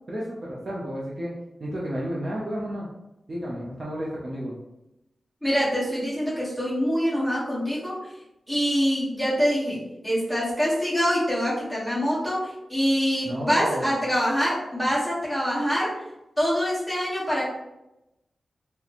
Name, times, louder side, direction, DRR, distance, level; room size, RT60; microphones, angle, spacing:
voice 1, 0.1-1.3 1.6-2.9 3.3-4.5 13.2-13.9, equal, 40° right, -5 dB, 0.6 m, -32 dB
voice 2, 5.4-8.0 8.5-12.4 12.7-15.9 16.4-17.4, equal, ahead, -8 dB, 1.3 m, -25 dB
4.0 x 2.2 x 2.9 m, 0.91 s
wide cardioid pair, 160°, 0 cm